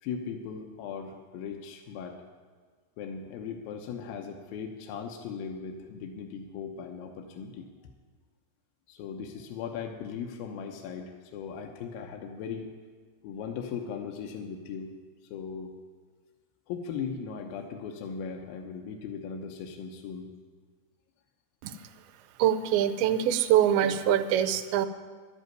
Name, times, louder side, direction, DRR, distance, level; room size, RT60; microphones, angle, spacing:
voice 1, 0.0-2.2 3.0-7.7 8.9-12.7 13.2-14.9 15.3-15.7 16.7-20.3, left 6 dB, 75° left, 2 dB, 2.6 m, -38 dB
voice 2, 22.4-24.9, right 10 dB, 85° right, 10 dB, 2.6 m, -24 dB
11.5 x 8.2 x 9.2 m, 1.5 s
omnidirectional pair, 4.4 m